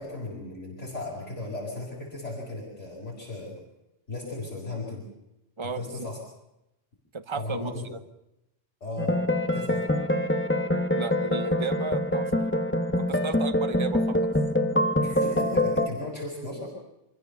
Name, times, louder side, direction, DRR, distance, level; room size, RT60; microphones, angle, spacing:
voice 1, 0.0-3.6 4.1-5.1 5.6-6.2 7.4-7.9 8.8-9.2 9.5-9.8 15.0-16.7, left 2 dB, 75° left, -4 dB, 5.7 m, -36 dB
voice 2, 5.6-6.1 7.1-7.7 10.9-12.3 13.0-14.3, right 4 dB, 25° right, 10 dB, 1.1 m, -33 dB
sound 1, 9.0-15.9, left 1 dB, 10° left, 1.4 m, -25 dB
26.5 x 15.5 x 6.8 m, 0.89 s
omnidirectional pair, 1.2 m